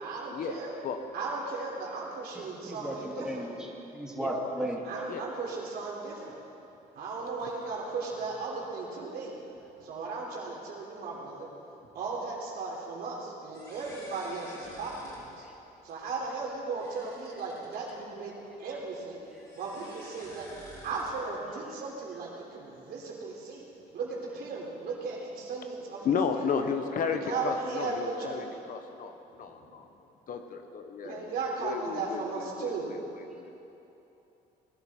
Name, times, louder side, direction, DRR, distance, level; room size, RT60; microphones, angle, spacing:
voice 1, 0.0-0.8 1.1-3.5 4.8-6.3 6.9-9.3 9.8-11.5 11.9-15.5 15.8-19.2 19.5-20.5 20.8-23.6 23.9-26.5 27.0-28.3 30.3-30.4 31.0-32.9, right 4 dB, 65° right, -3 dB, 3.5 m, -36 dB
voice 2, 2.3-4.8 15.4-15.5, right 1 dB, 5° right, -2 dB, 2.0 m, -35 dB
sound 1, 13.5-18.0 18.9-21.1, left 1 dB, 25° left, 3.9 m, -51 dB
voice 3, 26.0-29.9 30.3-31.3 31.6-33.0 33.4-33.6, left 6 dB, 55° left, 7 dB, 1.1 m, -33 dB
19.0 x 11.5 x 4.4 m, 2.9 s
cardioid pair, 110°, 17 cm